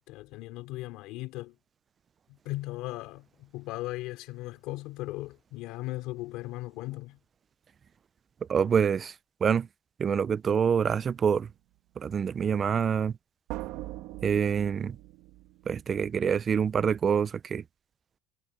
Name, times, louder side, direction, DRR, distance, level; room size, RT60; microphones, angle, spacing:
voice 1, 0.0-1.6 2.3-7.2, left 18 dB, 60° left, 3.5 m, -38 dB
voice 2, 8.5-9.1 9.4-9.7 10.0-11.5 12.0-13.1 14.2-15.0 15.7-17.6, right 7 dB, 20° right, 0.3 m, -26 dB
sound 1, 11.0-11.1 13.5-16.1, right 17 dB, 60° right, 2.1 m, -42 dB
cardioid pair, 175°, 0 cm